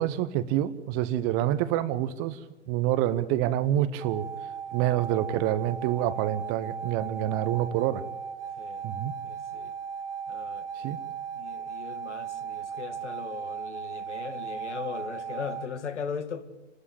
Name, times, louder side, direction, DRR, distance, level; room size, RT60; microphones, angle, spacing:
voice 1, 0.0-2.4 2.7-4.3 4.7-8.0 8.8-9.1 10.8-11.0, right 12 dB, 25° right, 0.8 m, -27 dB
sound 1, 4.0-15.7, right 7 dB, 50° right, 1.3 m, -37 dB
voice 2, 9.2-9.7 10.3-11.0 11.3-16.4, left 6 dB, 70° left, 2.3 m, -39 dB
28.5 x 13.0 x 8.6 m
hypercardioid pair, 125°, 37 cm